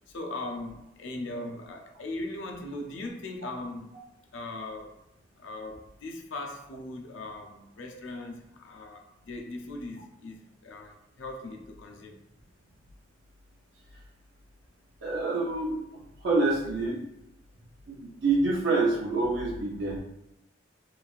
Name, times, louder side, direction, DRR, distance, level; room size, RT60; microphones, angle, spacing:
voice 1, 0.1-4.0 4.3-5.0 5.4-12.2, left 2 dB, 75° left, 0.5 m, -39 dB
voice 2, 15.0-15.8 16.2-17.1 17.9-20.0, right 3 dB, 70° right, 0.5 m, -27 dB
3.1 x 2.5 x 2.3 m
head